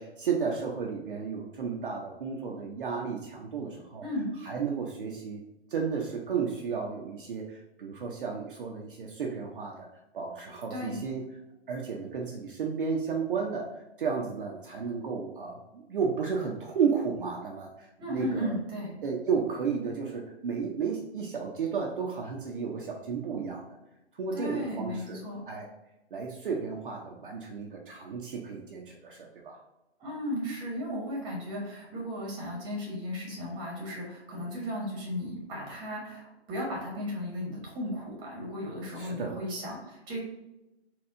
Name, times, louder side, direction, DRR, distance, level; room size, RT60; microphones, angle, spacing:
voice 1, 0.0-4.0 4.4-5.4 5.7-9.9 10.1-11.2 11.7-13.7 14.0-18.6 19.0-23.7 24.2-25.2 25.4-25.7 26.1-29.6 39.0-39.4, right 6 dB, 50° right, -1 dB, 0.6 m, -33 dB
voice 2, 4.0-4.3 10.7-11.0 18.0-19.0 24.3-25.5 30.0-40.2, equal, 15° right, -3 dB, 1.0 m, -35 dB
4.3 x 2.3 x 3.6 m, 0.95 s
figure-of-eight pair, 135°, 34 cm